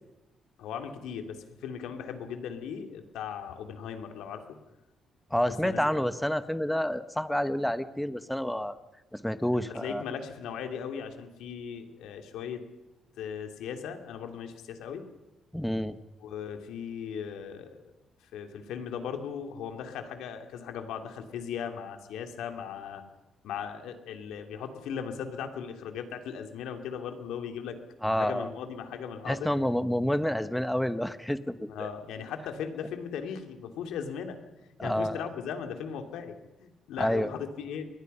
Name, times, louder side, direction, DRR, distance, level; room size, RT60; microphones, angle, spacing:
voice 1, 0.6-4.4 5.6-6.0 9.5-12.6 13.2-15.1 16.2-17.9 18.3-23.0 23.4-27.8 28.1-29.5 31.7-34.4 34.8-37.9, left 7 dB, 85° left, 5 dB, 3.0 m, -38 dB
voice 2, 5.3-8.8 9.1-10.0 15.5-16.0 28.0-28.5 29.3-31.9 34.8-35.3 37.0-37.3, equal, 5° left, 12 dB, 1.2 m, -29 dB
29.0 x 22.0 x 5.7 m, 1.0 s
cardioid pair, 90°, 0 cm